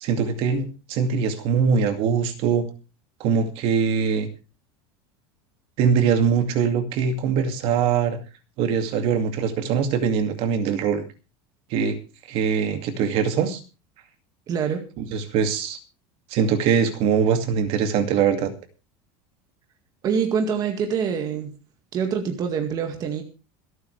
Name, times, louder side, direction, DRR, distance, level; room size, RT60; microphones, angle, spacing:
voice 1, 0.0-2.6 3.2-4.3 5.8-8.2 8.6-11.0 11.7-12.0 12.3-13.6 15.0-15.8 16.3-18.5, right 6 dB, 50° right, 8 dB, 2.3 m, -22 dB
voice 2, 14.5-14.8 20.0-21.5 21.9-23.2, right 6 dB, 30° right, 5 dB, 2.0 m, -25 dB
27.0 x 9.1 x 3.3 m, 0.31 s
cardioid pair, 160°, 12 cm